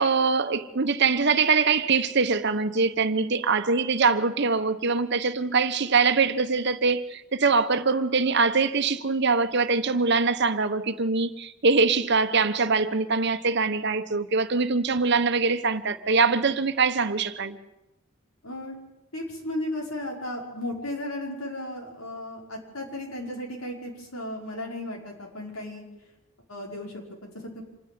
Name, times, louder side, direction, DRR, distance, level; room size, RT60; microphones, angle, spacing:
voice 1, 0.0-17.6, right 4 dB, 55° right, 1.1 m, -23 dB
voice 2, 18.4-18.8 19.1-25.8 26.5-27.6, left 1 dB, 85° left, 5.4 m, -35 dB
26.5 x 10.0 x 9.5 m
head